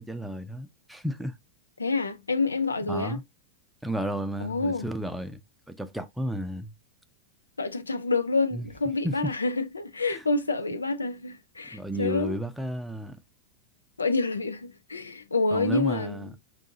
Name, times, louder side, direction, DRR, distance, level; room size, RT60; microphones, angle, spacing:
voice 1, 0.0-1.3 2.8-3.2 3.8-5.4 5.7-6.7 8.5-8.7 9.0-9.2 10.1-10.2 11.7-13.2 15.5-16.3, right 1 dB, ahead, 0.5 m, -32 dB
voice 2, 1.8-3.2 4.4-4.9 7.6-12.4 14.0-16.3, left 3 dB, 75° left, 0.5 m, -28 dB
4.8 x 2.7 x 2.6 m
figure-of-eight pair, 90°, 0 cm